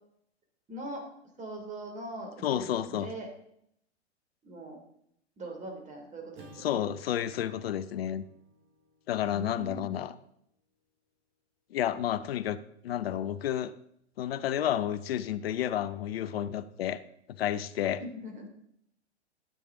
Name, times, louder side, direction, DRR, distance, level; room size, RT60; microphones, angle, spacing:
voice 1, 0.7-1.0 1.4-3.3 4.4-4.8 5.4-6.8 9.3-10.0 18.0-18.5, right 1 dB, 20° right, 3 dB, 3.0 m, -41 dB
voice 2, 2.4-3.1 6.6-8.3 9.1-10.1 11.7-12.6 12.8-13.7 14.2-17.0 17.3-18.0, left 11 dB, 60° left, 14 dB, 0.7 m, -31 dB
Acoustic guitar / Strum, 6.3-10.8, right 1 dB, 35° right, 3.5 m, -59 dB
13.0 x 8.5 x 3.8 m, 0.72 s
figure-of-eight pair, 105°, 35 cm